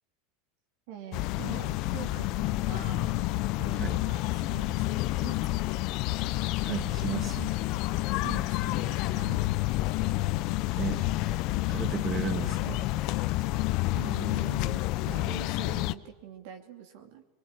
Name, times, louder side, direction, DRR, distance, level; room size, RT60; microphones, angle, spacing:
voice 1, 0.9-3.2 3.6-5.4 8.2-9.4 13.9-17.2, right 9 dB, 65° right, 4 dB, 2.8 m, -44 dB
sound 1, 1.1-15.9, left 17 dB, 55° left, 0.8 m, -29 dB
voice 2, 6.6-7.5 10.8-11.0 11.7-12.8, right 6 dB, 35° right, 6 dB, 2.3 m, -34 dB
23.0 x 21.5 x 9.8 m, 1.1 s
hypercardioid pair, 95°, 0 cm